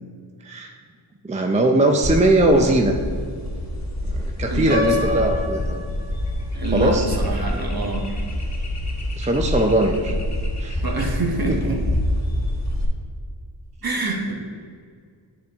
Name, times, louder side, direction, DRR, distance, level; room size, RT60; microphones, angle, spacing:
voice 1, 0.4-0.8 1.2-3.0 4.1-5.8 6.7-7.1 9.2-10.2 10.6-10.8, right 2 dB, 15° right, 3 dB, 0.4 m, -20 dB
sound 1, 2.0-12.9, left 1 dB, 35° left, 1.0 m, -26 dB
voice 2, 4.5-5.4 6.5-8.3 10.8-11.8 13.8-14.3, right 2 dB, 50° right, 1 dB, 1.1 m, -26 dB
Piano, 4.7-6.7, left 5 dB, 30° right, 1.4 m, -27 dB
9.4 x 4.2 x 3.5 m, 2.1 s
wide cardioid pair, 80°, 48 cm